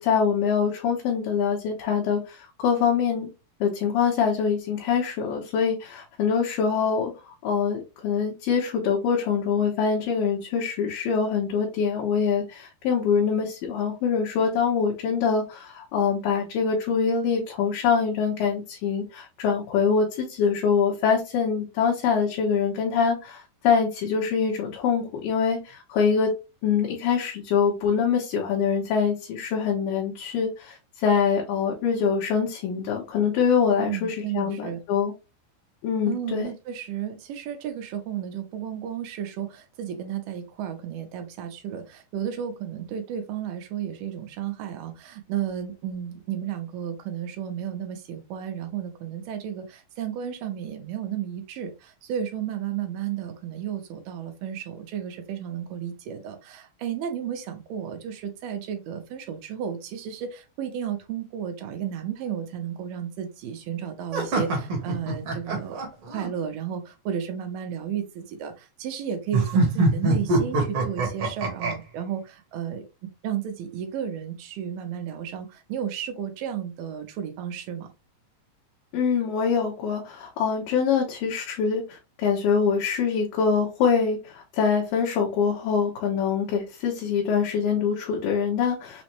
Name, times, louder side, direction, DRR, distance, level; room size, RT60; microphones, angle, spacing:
voice 1, 0.0-2.4 2.6-3.3 3.6-7.1 7.4-26.3 26.6-35.1 35.8-36.5 78.9-89.0, left 6 dB, 80° left, -2 dB, 2.5 m, -24 dB
voice 2, 33.8-34.8 36.1-65.8 66.1-72.8 73.2-77.9, right 9 dB, 80° right, 5 dB, 2.4 m, -33 dB
sound 1, 64.1-66.3 69.3-71.7, right 2 dB, 55° right, 1.7 m, -24 dB
6.1 x 2.1 x 2.9 m, 0.28 s
omnidirectional pair, 3.9 m